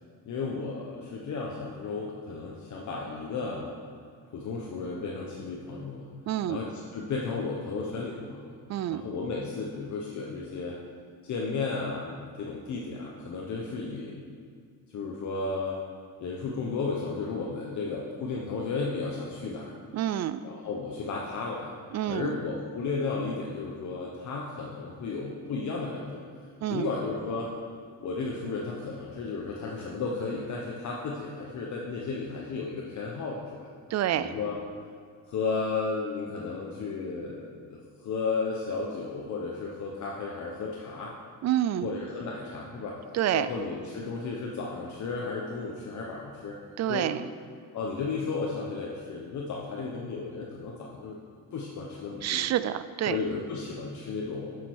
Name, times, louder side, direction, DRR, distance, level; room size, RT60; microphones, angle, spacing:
voice 1, 0.2-3.7 4.3-6.0 6.5-8.6 8.9-10.8 11.2-14.2 14.9-15.8 16.2-19.7 20.4-21.7 22.1-26.2 26.7-27.5 28.0-33.7 34.1-34.6 35.3-41.1 41.8-42.9 43.3-46.6 46.9-47.1 47.7-51.2 51.5-52.4 53.0-54.6, left 4 dB, 55° left, -2 dB, 1.1 m, -34 dB
voice 2, 6.3-6.6 8.7-9.0 19.9-20.4 21.9-22.4 26.6-26.9 33.9-34.3 41.4-41.9 43.1-43.5 46.8-47.2 52.2-53.2, right 12 dB, 50° right, 14 dB, 0.4 m, -28 dB
7.6 x 6.8 x 6.4 m, 2.1 s
cardioid pair, 125°, 36 cm